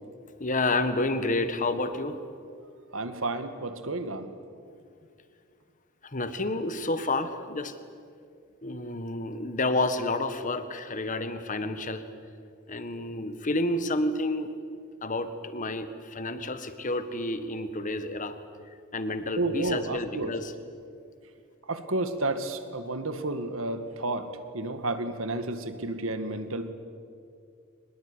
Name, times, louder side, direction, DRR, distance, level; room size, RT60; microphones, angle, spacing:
voice 1, 0.4-2.2 6.0-7.7 8.6-12.0 12.7-14.5 15.0-18.4 18.9-20.5, left 2 dB, 40° left, 10 dB, 1.6 m, -30 dB
voice 2, 2.9-4.3 19.3-20.3 21.7-26.7, right 2 dB, 70° right, 9 dB, 2.0 m, -31 dB
23.5 x 20.5 x 9.9 m, 2.4 s
head